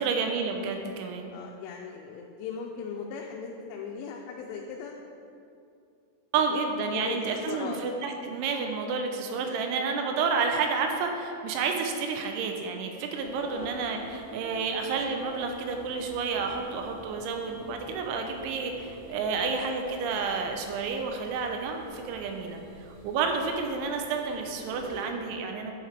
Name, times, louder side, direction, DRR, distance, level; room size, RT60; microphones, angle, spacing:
voice 1, 0.0-1.3 6.3-22.6 23.0-25.7, right 5 dB, 85° right, 3 dB, 2.9 m, -30 dB
voice 2, 1.3-5.0 6.9-7.2 7.5-7.8 8.3-8.4 9.5-9.6 13.5-13.7 19.2-19.4, left 6 dB, 85° left, -1 dB, 3.1 m, -38 dB
sound 1, 13.2-25.0, left 1 dB, 35° right, 1.4 m, -48 dB
11.5 x 7.7 x 3.3 m, 2.5 s
omnidirectional pair, 5.8 m